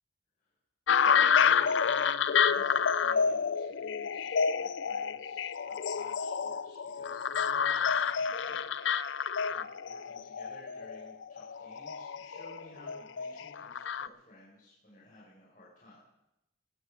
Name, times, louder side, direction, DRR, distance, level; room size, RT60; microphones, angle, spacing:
sound 1, 0.9-14.1, left 6 dB, 70° left, 0.4 m, -29 dB
voice 1, 0.9-9.1 9.5-16.0, left 1 dB, 45° left, -7 dB, 5.2 m, -56 dB
19.0 x 13.5 x 5.0 m, 0.88 s
head